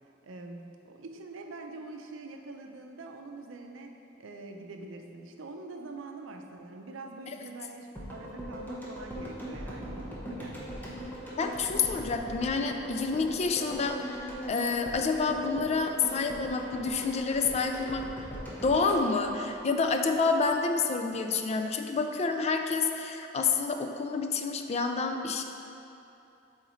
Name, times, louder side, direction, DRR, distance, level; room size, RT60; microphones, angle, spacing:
voice 1, 0.2-11.2, right 3 dB, 90° right, 3 dB, 0.5 m, -45 dB
sound 1, 8.0-20.1 20.4-20.5, equal, 10° left, 0.9 m, -40 dB
voice 2, 11.4-18.1 18.6-25.4, left 4 dB, 35° left, 5 dB, 0.3 m, -28 dB
7.7 x 3.9 x 3.1 m, 2.8 s
head